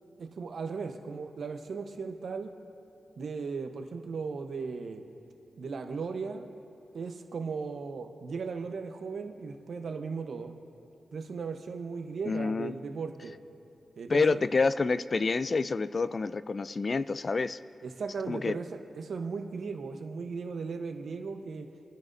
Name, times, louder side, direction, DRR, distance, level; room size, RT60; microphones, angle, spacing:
voice 1, 0.2-2.5 3.2-5.0 5.6-6.5 6.9-10.5 11.1-13.3 14.0-14.2 17.8-21.7, right 5 dB, 70° right, 5 dB, 0.9 m, -37 dB
voice 2, 12.3-12.8 14.1-17.6 18.3-18.6, left 4 dB, 45° left, 15 dB, 0.4 m, -28 dB
28.0 x 10.5 x 2.7 m, 2.8 s
cardioid pair, 60°, 0 cm